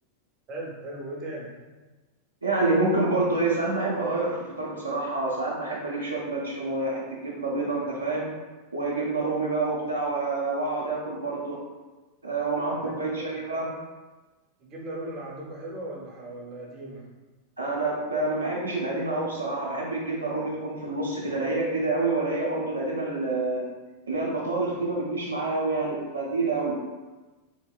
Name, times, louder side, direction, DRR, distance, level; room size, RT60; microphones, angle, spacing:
voice 1, 0.5-1.5 12.8-13.3 14.6-17.0, right 1 dB, 35° right, -3 dB, 0.6 m, -37 dB
voice 2, 2.4-8.3 8.7-11.6 12.2-13.7 17.6-23.6 24.1-26.8, right 2 dB, 80° right, -4 dB, 0.4 m, -27 dB
2.8 x 2.0 x 2.3 m, 1.2 s
figure-of-eight pair, 90°, 0 cm